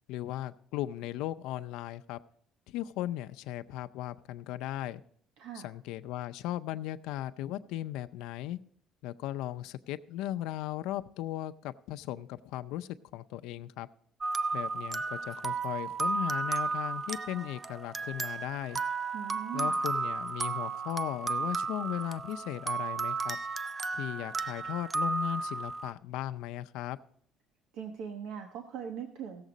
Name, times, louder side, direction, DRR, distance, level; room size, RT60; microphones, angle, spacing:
voice 1, 0.1-2.2 2.7-5.0 5.5-8.6 9.0-13.9 14.5-18.8 19.5-23.4 23.9-27.0, left 13 dB, 80° left, 11 dB, 0.5 m, -37 dB
voice 2, 5.4-5.7 19.1-19.8 27.7-29.4, right 8 dB, 75° right, 5 dB, 1.0 m, -40 dB
sound 1, 14.2-25.9, right 4 dB, 15° right, 0.3 m, -33 dB
16.5 x 7.3 x 3.9 m, 0.64 s
cardioid pair, 145°, 0 cm